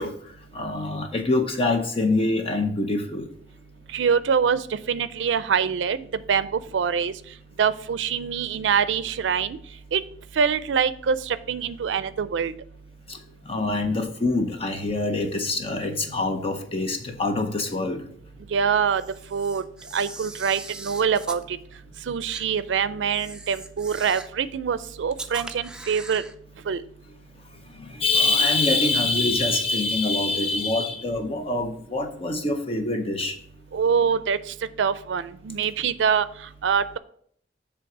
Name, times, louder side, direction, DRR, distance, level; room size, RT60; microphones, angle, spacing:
voice 1, 0.0-3.3 13.1-13.2 13.4-18.1 27.7-33.4, left 2 dB, 30° left, 5 dB, 0.7 m, -25 dB
voice 2, 3.9-4.6 4.9-6.0 6.3-6.5 6.7-7.1 7.6-9.6 9.9-10.0 10.4-12.5 18.5-19.0 19.3-19.6 19.9-21.4 22.1-26.2 26.7-26.8 33.7-34.4 34.8-36.3 36.6-37.0, right 6 dB, 85° right, 15 dB, 0.4 m, -24 dB
Camera, 18.9-21.4 22.3-22.5 23.1-24.4 25.1-26.3, right 2 dB, 5° right, 0.4 m, -40 dB
7.7 x 3.4 x 6.0 m, 0.64 s
head